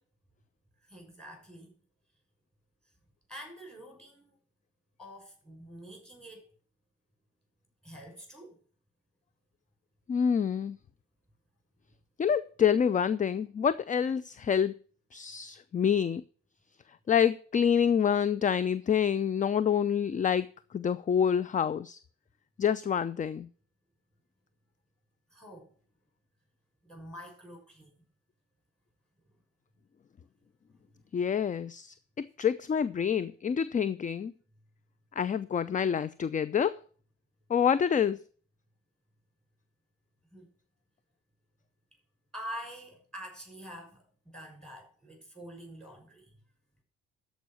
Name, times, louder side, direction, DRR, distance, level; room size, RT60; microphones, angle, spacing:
voice 1, 0.9-1.7 3.3-4.4 5.0-6.4 7.8-8.6 25.3-25.7 26.8-27.9 40.3-40.5 42.3-46.3, equal, ahead, 6.2 m, -46 dB
voice 2, 10.1-10.8 12.2-14.7 15.1-16.2 17.1-20.5 20.7-22.0 22.6-23.5 31.1-31.9 32.4-34.3 35.2-36.8 37.5-38.2, left 8 dB, 20° left, 0.5 m, -27 dB
13.0 x 5.2 x 7.8 m
figure-of-eight pair, 50°, 36 cm